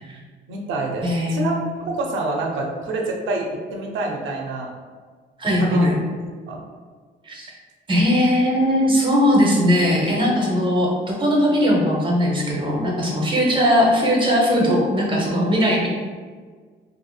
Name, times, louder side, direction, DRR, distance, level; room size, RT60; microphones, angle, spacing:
voice 1, 0.5-4.7 5.6-5.9 6.5-6.6, right 2 dB, 75° right, 1 dB, 0.5 m, -27 dB
voice 2, 1.0-1.6 5.4-5.9 7.2-7.5 7.9-15.9, equal, 25° right, -2 dB, 0.8 m, -19 dB
2.8 x 2.5 x 2.3 m, 1.5 s
cardioid pair, 90°, 20 cm